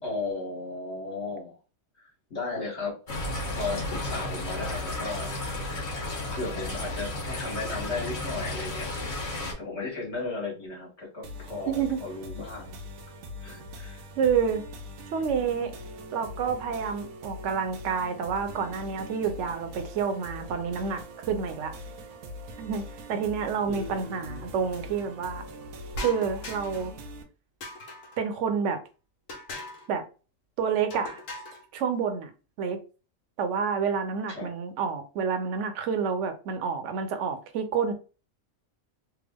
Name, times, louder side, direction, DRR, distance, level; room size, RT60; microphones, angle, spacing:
voice 1, 0.0-1.6 1.9-2.0 2.3-3.0 3.5-5.3 6.3-9.0 9.6-12.8 13.4-14.0 23.7-24.5 34.3-34.5, left 3 dB, 55° left, 1.4 m, -35 dB
sound 1, 3.1-9.5, left 2 dB, 40° left, 1.1 m, -33 dB
sound 2, 11.2-27.2, left 1 dB, 90° right, 1.1 m, -42 dB
voice 2, 11.7-12.0 14.2-14.6 15.1-15.7 16.1-21.8 22.6-25.4 26.0-26.9 28.2-28.8 29.9-30.1 30.6-31.2 31.7-32.3 32.6-32.8 33.4-37.9, right 6 dB, 65° right, 0.9 m, -29 dB
sound 3, 25.9-26.9 27.6-28.2 29.3-29.9 30.9-31.6, left 1 dB, 75° left, 1.2 m, -39 dB
3.4 x 2.1 x 3.4 m
omnidirectional pair, 1.4 m